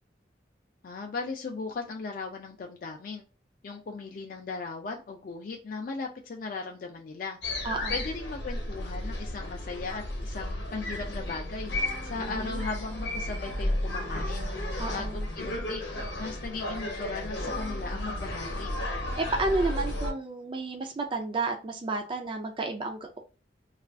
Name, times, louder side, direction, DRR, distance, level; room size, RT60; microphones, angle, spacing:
voice 1, 0.8-3.2 3.6-7.4 7.9-11.7 12.0-14.5 14.9-15.8 16.2-18.7, left 4 dB, 50° left, 2 dB, 0.4 m, -37 dB
Notting Hill - Rough Trade Records on Portabello Road, 7.4-20.1, left 1 dB, 65° left, 0.8 m, -33 dB
voice 2, 7.6-8.0 12.1-12.7 14.8-15.2 19.2-23.2, right 3 dB, 30° right, 4 dB, 0.3 m, -31 dB
2.4 x 2.3 x 3.4 m, 0.33 s
head